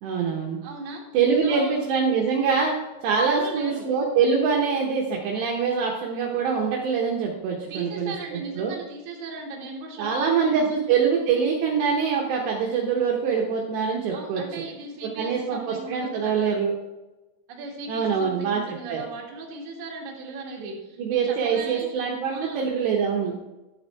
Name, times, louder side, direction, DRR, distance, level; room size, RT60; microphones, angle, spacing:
voice 1, 0.0-0.6 1.1-2.7 3.0-8.7 10.0-14.4 15.2-16.7 17.9-18.6 18.9-19.0 21.0-23.4, right 6 dB, 70° right, -1 dB, 2.9 m, -24 dB
voice 2, 0.6-1.1 1.4-1.8 3.3-3.9 7.7-10.7 14.1-16.6 17.5-22.0 22.2-22.7, right 3 dB, 50° right, -2 dB, 2.7 m, -37 dB
12.0 x 7.3 x 4.5 m, 1.1 s
omnidirectional pair, 5.6 m